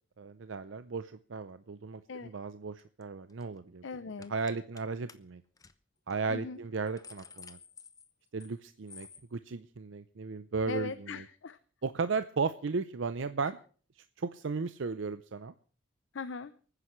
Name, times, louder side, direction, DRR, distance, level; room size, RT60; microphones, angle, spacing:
voice 1, 0.2-3.8 4.3-5.4 6.1-7.6 8.3-11.2 11.8-13.6 14.2-15.5, right 4 dB, 75° right, 12 dB, 0.6 m, -35 dB
sound 1, 2.8-3.0 3.3-3.6 4.2-4.8 5.1-5.2 5.6-5.7 6.1-6.2 6.7-8.6 8.9-9.2, left 6 dB, 20° left, 0.6 m, -52 dB
voice 2, 3.8-4.3 6.3-6.6 10.7-11.6 16.1-16.5, left 5 dB, 75° left, 13 dB, 0.6 m, -39 dB
29.5 x 9.8 x 3.1 m, 0.41 s
head